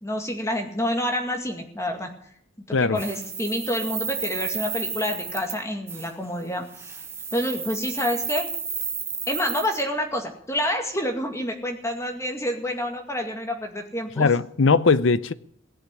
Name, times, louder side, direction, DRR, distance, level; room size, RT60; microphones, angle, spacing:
voice 1, 0.0-2.1 2.7-6.7 7.3-8.5 9.3-14.3, equal, 15° left, 2.1 m, -28 dB
sound 1, 3.0-5.6 5.9-6.1 6.7-9.8, right 5 dB, 10° right, 1.3 m, -32 dB
voice 2, 14.2-15.3, left 4 dB, 75° left, 0.7 m, -19 dB
17.5 x 7.2 x 9.8 m
head